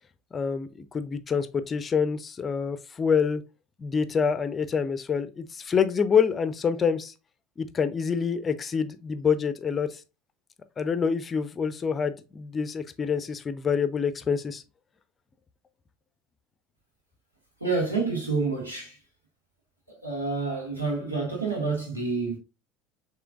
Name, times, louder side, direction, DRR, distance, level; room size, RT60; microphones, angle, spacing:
voice 1, 0.3-3.4 3.8-7.1 7.6-10.0 10.8-14.6, left 6 dB, 25° left, 0.5 m, -26 dB
voice 2, 17.6-18.9 20.0-22.4, right 4 dB, 85° right, 1.6 m, -28 dB
6.9 x 3.1 x 2.4 m
figure-of-eight pair, 70°, 0 cm